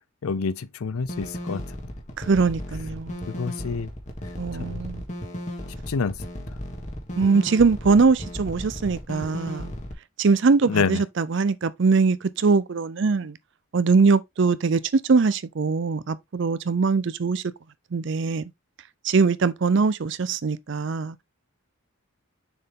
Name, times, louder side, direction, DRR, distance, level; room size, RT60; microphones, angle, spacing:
voice 1, 0.2-1.9 3.3-3.9 4.5-4.8 5.9-6.3 10.7-11.0, left 5 dB, 80° left, 0.5 m, -28 dB
sound 1, 1.1-9.9, equal, 35° left, 1.5 m, -35 dB
voice 2, 2.2-3.3 4.4-5.0 7.2-9.7 10.2-13.4 13.7-17.4 17.9-18.5 19.0-21.2, right 4 dB, 55° right, 0.5 m, -22 dB
6.7 x 4.5 x 3.4 m
head